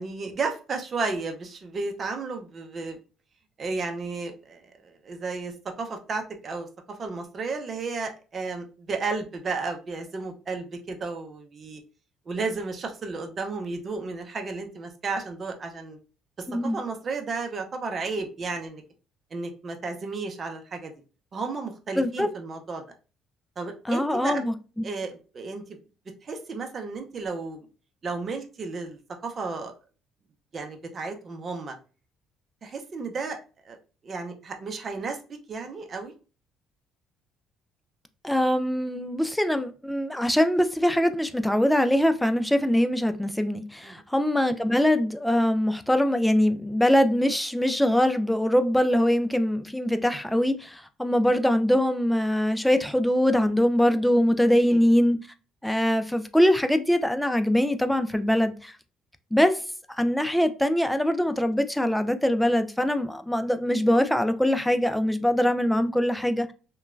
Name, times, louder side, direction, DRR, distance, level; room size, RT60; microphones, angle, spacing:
voice 1, 0.0-3.0 3.6-6.7 7.0-11.8 12.3-16.0 16.6-18.8 19.3-20.9 21.3-22.8 23.6-24.5 24.8-25.8 26.2-27.7 28.0-29.7 30.5-31.7 32.6-33.4 33.6-33.8 34.0-35.2 35.5-36.1 43.8-44.0 54.7-54.8, right 4 dB, 40° right, 0.6 m, -33 dB
voice 2, 22.0-22.3 23.9-24.5 38.2-55.2 55.6-58.7 59.3-59.6 60.0-66.5, equal, 5° left, 0.4 m, -23 dB
2.9 x 2.3 x 2.4 m
supercardioid pair, 85°, 0 cm